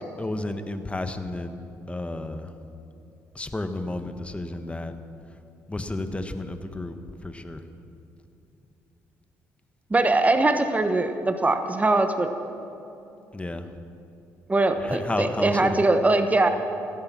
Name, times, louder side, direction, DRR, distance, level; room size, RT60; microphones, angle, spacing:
voice 1, 0.2-1.5 1.9-2.4 3.3-4.9 5.7-7.0 7.2-7.6 13.3-13.6 14.8-15.8, left 2 dB, 15° left, 8 dB, 1.3 m, -31 dB
voice 2, 9.9-12.3 14.5-16.5, right 2 dB, 20° right, 7 dB, 1.2 m, -21 dB
17.5 x 13.0 x 6.1 m, 2.8 s
supercardioid pair, 65°, 7 cm